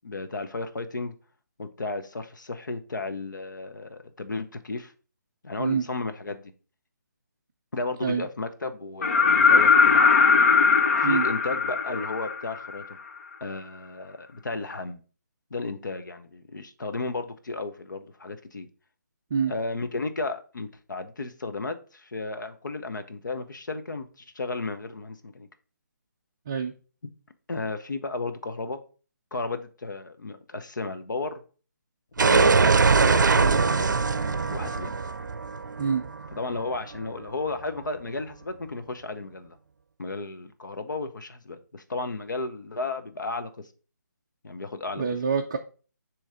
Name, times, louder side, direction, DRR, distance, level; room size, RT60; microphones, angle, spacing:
voice 1, 0.0-1.1 1.6-4.9 5.4-6.5 7.7-10.1 10.9-12.8 13.4-15.0 15.5-18.7 19.5-25.5 27.5-28.8 29.3-31.4 32.2-34.9 36.3-39.6 40.0-43.5 44.4-45.0, left 3 dB, 90° left, 0.9 m, -34 dB
sound 1, 9.0-12.8 14.7-14.8, left 5 dB, 45° left, 0.7 m, -19 dB
sound 2, 32.2-36.9, right 4 dB, 85° right, 0.5 m, -22 dB
voice 2, 45.0-45.6, right 6 dB, 20° right, 0.4 m, -26 dB
6.5 x 3.1 x 5.0 m
hypercardioid pair, 170°, 10 cm